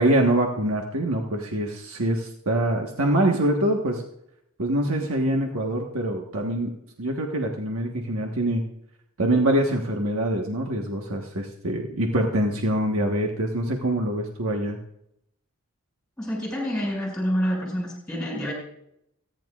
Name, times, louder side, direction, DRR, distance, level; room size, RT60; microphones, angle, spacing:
voice 1, 0.0-4.0 4.6-6.7 7.0-8.6 9.2-14.8, right 1 dB, 80° right, 1 dB, 1.3 m, -24 dB
voice 2, 16.2-18.5, equal, 5° left, -1 dB, 5.4 m, -27 dB
29.5 x 10.5 x 2.4 m, 0.78 s
head